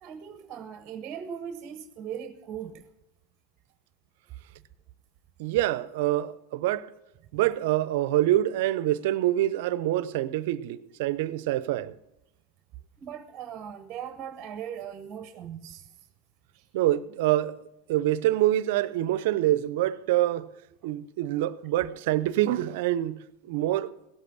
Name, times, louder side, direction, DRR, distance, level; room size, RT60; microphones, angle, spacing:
voice 1, 0.0-2.9 13.0-15.9 16.5-16.7 20.8-20.9, right 8 dB, 40° right, 0.8 m, -39 dB
voice 2, 5.4-6.9 7.3-11.9 16.7-17.6 17.9-20.5 20.8-23.2 23.5-23.9, right 14 dB, 65° right, 0.6 m, -26 dB
17.5 x 8.3 x 6.0 m
hypercardioid pair, 100°, 0 cm